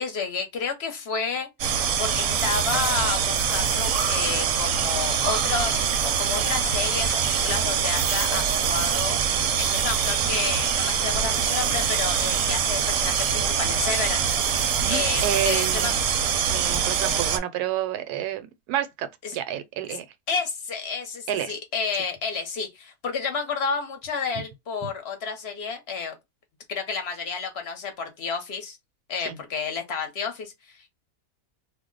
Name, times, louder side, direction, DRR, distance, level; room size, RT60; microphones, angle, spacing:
voice 1, 0.0-1.5 2.0-9.2 9.6-14.6 14.9-15.9 19.2-19.4 19.9-20.0 20.3-26.2 26.7-28.8 29.1-30.9, left 5 dB, 50° left, 0.9 m, -31 dB
sound 1, 1.6-17.4, right 7 dB, 70° right, 0.8 m, -24 dB
voice 2, 14.8-15.9 16.5-20.1 21.3-21.5 29.3-29.4, right 11 dB, 85° right, 1.1 m, -29 dB
2.6 x 2.0 x 3.7 m
omnidirectional pair, 1.6 m